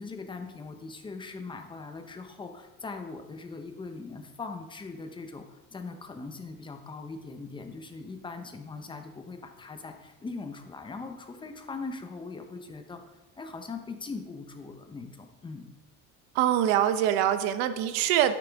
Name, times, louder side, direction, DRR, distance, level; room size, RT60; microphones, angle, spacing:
voice 1, 0.0-15.7, left 4 dB, 15° left, 5 dB, 0.8 m, -40 dB
voice 2, 16.3-18.4, right 11 dB, 85° right, 11 dB, 0.8 m, -24 dB
9.2 x 9.1 x 3.5 m, 1.1 s
cardioid pair, 155°, 35 cm